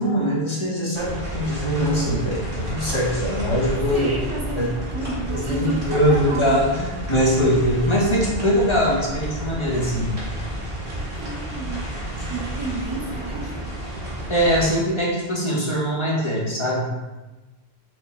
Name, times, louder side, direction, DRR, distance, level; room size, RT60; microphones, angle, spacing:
voice 1, 0.0-4.1 4.6-4.7 5.3-10.2 14.3-16.9, equal, 30° left, -4 dB, 0.7 m, -22 dB
sound 1, 0.9-14.7, right 1 dB, 60° right, 1.9 m, -31 dB
voice 2, 3.6-6.6 10.9-11.9 12.3-13.7, right 2 dB, 30° right, -3 dB, 0.8 m, -31 dB
5.0 x 2.0 x 4.2 m, 1.2 s
omnidirectional pair, 1.1 m